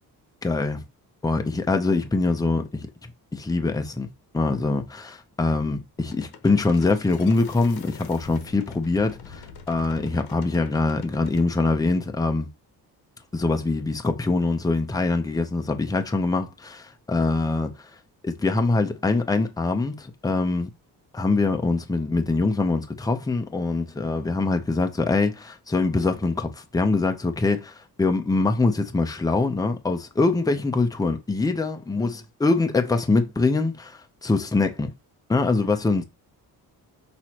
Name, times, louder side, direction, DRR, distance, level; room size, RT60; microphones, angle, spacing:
voice 1, 0.4-0.8 1.2-2.9 3.3-4.1 4.3-12.5 13.3-17.7 18.4-20.7 21.1-34.9 35.3-36.0, left 3 dB, 10° left, 0.6 m, -24 dB
sound 1, 6.0-11.5, left 6 dB, 80° left, 1.1 m, -44 dB
6.0 x 3.0 x 2.9 m
cardioid pair, 140°, 38 cm